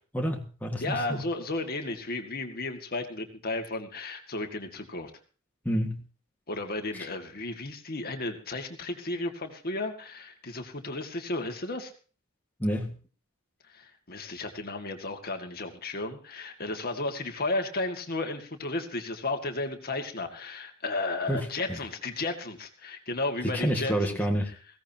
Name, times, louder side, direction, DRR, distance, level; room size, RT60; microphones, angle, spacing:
voice 1, 0.1-1.2 5.7-6.0 6.9-7.1 12.6-13.0 21.3-21.8 23.4-24.5, equal, 10° left, 1 dB, 1.8 m, -29 dB
voice 2, 0.8-5.1 6.5-11.9 13.7-24.2, left 2 dB, 45° left, 5 dB, 2.1 m, -33 dB
20.0 x 16.5 x 2.9 m, 0.37 s
head